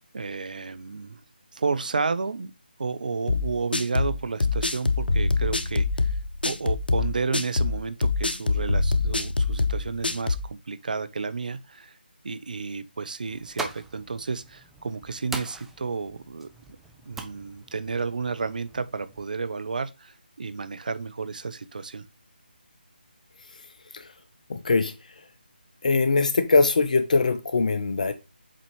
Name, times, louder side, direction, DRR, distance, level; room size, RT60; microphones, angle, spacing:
voice 1, 0.1-1.2 1.5-2.5 2.8-6.2 6.4-12.0 12.2-16.5 17.1-22.1, right 4 dB, 55° right, 0.8 m, -31 dB
sound 1, 3.3-10.5, left 3 dB, 70° left, 1.0 m, -25 dB
sound 2, 13.3-19.3, right 3 dB, 5° right, 0.5 m, -42 dB
voice 2, 24.5-24.9 25.8-28.1, left 3 dB, 50° left, 0.7 m, -22 dB
7.7 x 4.1 x 3.0 m
figure-of-eight pair, 155°, 5 cm